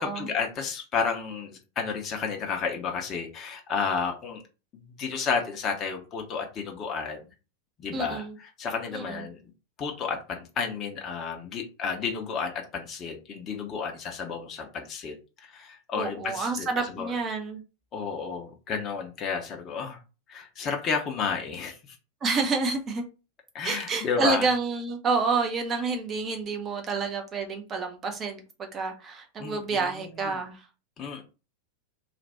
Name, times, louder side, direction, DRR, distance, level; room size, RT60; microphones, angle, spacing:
voice 1, 0.0-4.4 4.7-7.2 7.8-9.4 9.8-17.1 17.9-20.0 20.3-22.0 23.5-24.5 29.4-30.4 31.0-31.2, left 5 dB, 30° left, 3 dB, 0.9 m, -32 dB
voice 2, 7.9-8.4 8.9-9.2 15.9-17.6 22.2-23.0 23.6-30.7, right 4 dB, 25° right, 4 dB, 0.9 m, -29 dB
3.3 x 2.5 x 4.1 m, 0.32 s
figure-of-eight pair, 90°, 0 cm